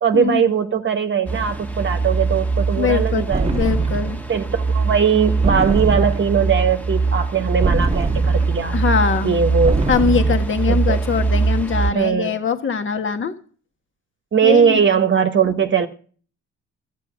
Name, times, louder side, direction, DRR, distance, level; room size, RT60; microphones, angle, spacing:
voice 1, 0.0-3.5 4.3-8.8 9.2-9.8 10.7-11.0 11.9-12.4 14.3-15.9, right 7 dB, 40° right, 1.1 m, -19 dB
sound 1, 1.3-11.9, right 4 dB, 5° left, 1.5 m, -22 dB
voice 2, 2.8-3.2 3.5-4.2 8.6-9.4 9.9-13.3 14.4-14.8, left 6 dB, 40° left, 1.5 m, -22 dB
sound 2, 3.3-4.2 5.4-6.4 7.6-8.6 9.6-10.5, right 3 dB, 20° right, 1.3 m, -24 dB
13.0 x 9.1 x 6.1 m
cardioid pair, 90°, 30 cm